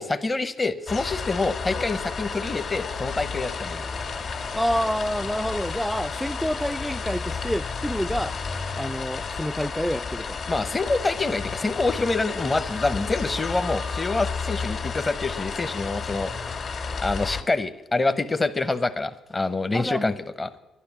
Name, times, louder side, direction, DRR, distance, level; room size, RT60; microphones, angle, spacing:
voice 1, 0.0-3.9 10.5-16.5 17.0-20.5, left 3 dB, 25° left, 0.8 m, -26 dB
sound 1, 0.9-17.4, left 5 dB, 60° left, 2.1 m, -32 dB
sound 2, 3.1-8.8, left 4 dB, 90° left, 1.9 m, -43 dB
voice 2, 4.5-8.4 8.8-10.4 19.7-20.2, equal, ahead, 0.3 m, -28 dB
12.0 x 10.5 x 7.2 m
cardioid pair, 90°, 0 cm